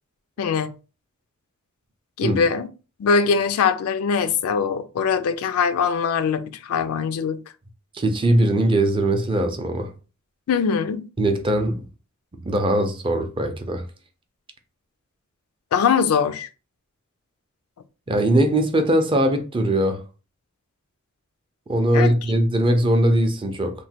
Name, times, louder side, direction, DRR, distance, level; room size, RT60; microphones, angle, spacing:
voice 1, 0.4-0.7 2.2-2.7 3.0-7.4 10.5-11.0 15.7-16.5 21.9-22.1, left 6 dB, 75° left, 0.3 m, -22 dB
voice 2, 7.9-9.9 11.2-11.8 12.4-13.8 18.1-20.0 21.7-23.7, right 1 dB, 25° right, 0.4 m, -20 dB
3.0 x 2.1 x 2.8 m
head